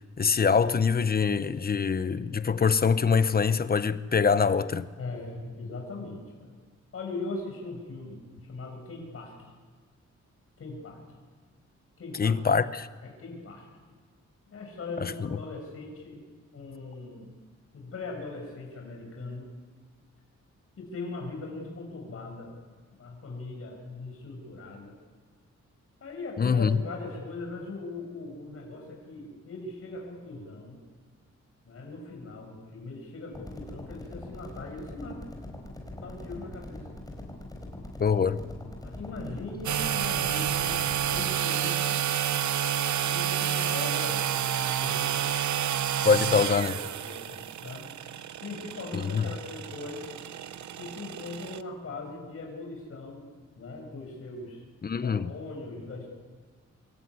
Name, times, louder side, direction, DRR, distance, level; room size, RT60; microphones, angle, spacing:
voice 1, 0.2-4.9 12.2-12.8 26.4-26.8 38.0-38.4 46.0-46.7 48.9-49.2 54.8-55.3, left 5 dB, 30° left, 0.9 m, -24 dB
voice 2, 5.0-6.5 6.9-9.5 10.6-11.0 12.0-12.6 13.0-13.7 14.5-16.2 16.5-17.3 17.7-19.5 20.8-22.5 23.0-24.9 26.0-30.8 31.6-35.2 36.0-36.8 38.8-42.0 43.0-45.2 46.1-47.9 48.4-50.1 50.8-53.3 53.6-54.6 55.0-56.1, left 3 dB, 50° left, 6.5 m, -40 dB
sound 1, 33.3-41.2, left 1 dB, 15° left, 4.5 m, -42 dB
sound 2, 39.6-51.6, right 10 dB, 75° right, 0.9 m, -29 dB
27.0 x 21.5 x 9.7 m
wide cardioid pair, 175°, 29 cm